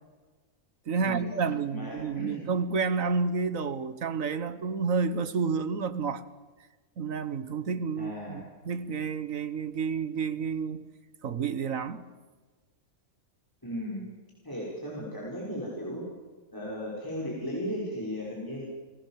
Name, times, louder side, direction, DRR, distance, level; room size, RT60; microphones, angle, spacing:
voice 1, 0.9-6.2 7.0-10.8 11.2-12.0, right 5 dB, 65° right, 1.6 m, -30 dB
voice 2, 1.7-2.4 8.0-8.4 13.6-14.1 14.4-16.0 16.5-18.6, equal, 15° left, 5.9 m, -36 dB
30.0 x 19.0 x 7.6 m
omnidirectional pair, 1.5 m